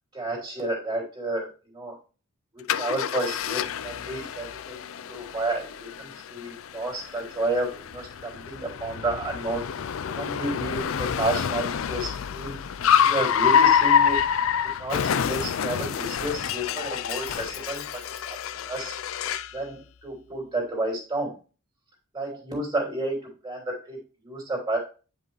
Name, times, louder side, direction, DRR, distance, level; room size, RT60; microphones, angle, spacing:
voice 1, 0.1-2.0 2.5-4.8 5.1-9.7 10.2-12.6 13.0-14.2 14.8-18.4 18.6-18.9 19.5-21.4 22.1-24.8, right 2 dB, 20° right, -3 dB, 3.1 m, -31 dB
Car, 2.7-19.6, left 8 dB, 75° left, 0.4 m, -27 dB
9.9 x 5.4 x 3.1 m, 0.36 s
head